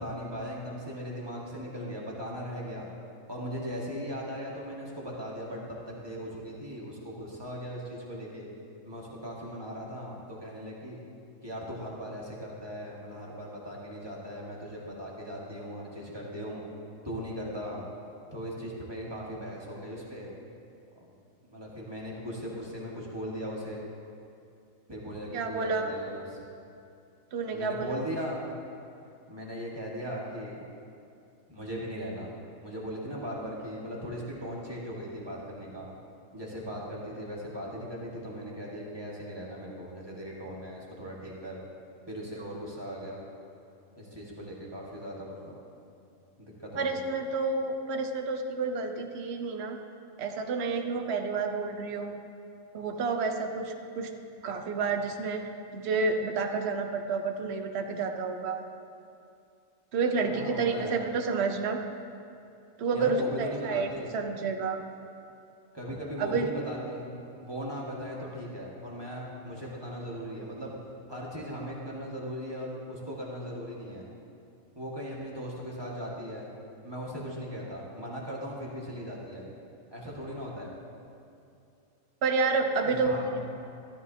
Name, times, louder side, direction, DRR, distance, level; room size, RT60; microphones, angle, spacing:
voice 1, 0.0-2.9 3.3-8.5 8.8-11.0 11.4-16.6 17.0-17.9 18.3-20.3 21.0-21.1 21.5-23.8 24.9-26.5 27.5-28.6 29.3-30.6 31.5-32.3 32.6-35.9 36.3-41.6 42.1-43.2 44.0-45.6 46.4-47.0 60.2-61.0 62.9-64.1 65.7-70.7 71.1-74.0 74.7-76.5 76.8-79.5 79.9-80.7 82.9-83.3, equal, 20° right, -5 dB, 1.6 m, -38 dB
voice 2, 25.3-26.0 27.3-28.0 46.8-49.8 50.2-52.1 52.7-54.1 54.4-58.6 59.9-61.8 62.8-64.8 66.2-66.5 82.2-83.2, right 4 dB, 55° right, 4 dB, 1.0 m, -30 dB
14.0 x 13.0 x 2.8 m, 2.6 s
omnidirectional pair, 1.5 m